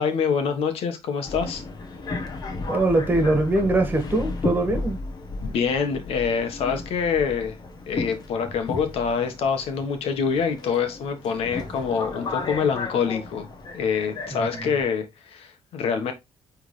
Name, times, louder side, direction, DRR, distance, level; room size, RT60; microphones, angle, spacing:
voice 1, 0.0-1.6 5.4-7.6 7.9-13.5 13.7-16.1, left 6 dB, 85° left, 1.3 m, -25 dB
Subway metro underground, 1.2-14.8, left 3 dB, 40° left, 1.3 m, -34 dB
voice 2, 2.7-5.0 14.3-14.7, right 2 dB, 20° right, 2.0 m, -22 dB
9.2 x 3.6 x 3.2 m
cardioid pair, 140°, 10 cm